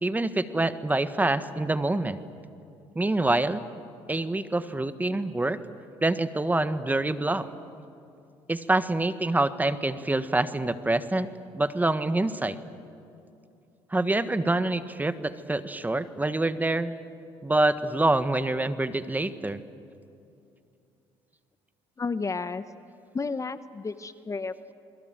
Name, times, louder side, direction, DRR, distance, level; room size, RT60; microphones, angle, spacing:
voice 1, 0.0-2.2 2.9-3.6 4.1-5.6 6.0-7.5 8.5-12.6 13.9-16.9 17.4-19.6, right 2 dB, 15° right, 12 dB, 1.4 m, -26 dB
voice 2, 22.0-22.6 23.1-24.7, left 4 dB, 25° left, 13 dB, 1.0 m, -32 dB
29.0 x 22.0 x 7.7 m, 2.6 s
supercardioid pair, 70°, 12 cm